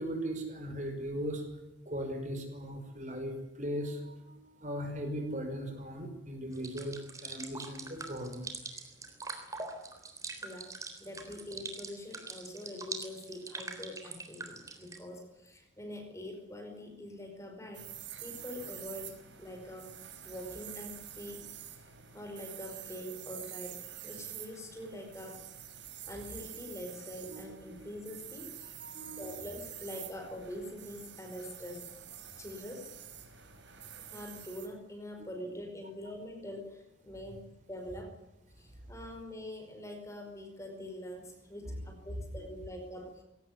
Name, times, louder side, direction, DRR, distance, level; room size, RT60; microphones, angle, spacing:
voice 1, 0.0-1.4 1.9-8.5 18.2-18.4 27.3-27.4 28.8-29.4, equal, 40° right, 4 dB, 5.8 m, -38 dB
sound 1, 6.5-15.0, right 3 dB, 15° right, 3.7 m, -43 dB
voice 2, 10.4-10.7 11.0-17.9 18.2-19.9 20.2-21.8 22.1-25.4 26.1-28.8 29.2-31.9 32.4-32.9 34.1-38.1 38.6-43.2, left 1 dB, 15° left, 3 dB, 5.2 m, -44 dB
sound 2, 17.7-34.7, right 10 dB, 65° right, 4.9 m, -47 dB
22.0 x 18.5 x 9.9 m, 0.90 s
head